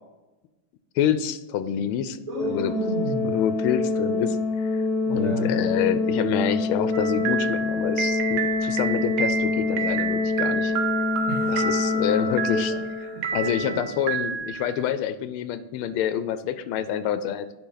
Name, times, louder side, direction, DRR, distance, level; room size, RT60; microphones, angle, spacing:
voice 1, 1.0-2.7 3.3-4.8 5.1-10.7 11.5-12.7 13.3-17.5, left 9 dB, 85° left, 12 dB, 1.4 m, -27 dB
voice 2, 2.3-3.4 5.0-5.5 11.3-13.8, right 2 dB, 20° right, -7 dB, 1.7 m, -33 dB
Organ, 2.4-13.2, left 3 dB, 5° left, 1.3 m, -26 dB
sound 1, 6.9-14.8, right 6 dB, 90° right, 1.7 m, -30 dB
10.5 x 4.1 x 3.9 m, 1.1 s
omnidirectional pair, 2.3 m